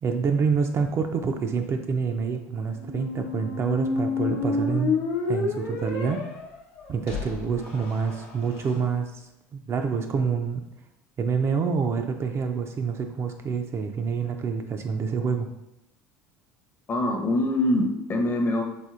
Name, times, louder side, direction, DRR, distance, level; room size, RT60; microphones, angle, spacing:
voice 1, 0.0-5.0 5.3-6.2 6.9-9.3 9.5-10.6 11.2-15.5, right 5 dB, 35° right, 5 dB, 0.4 m, -27 dB
sound 1, 2.8-8.7, left 3 dB, 85° left, 0.9 m, -30 dB
voice 2, 16.9-18.6, left 1 dB, 30° left, 2 dB, 0.7 m, -24 dB
4.3 x 2.6 x 2.4 m, 0.87 s
supercardioid pair, 90°, 8 cm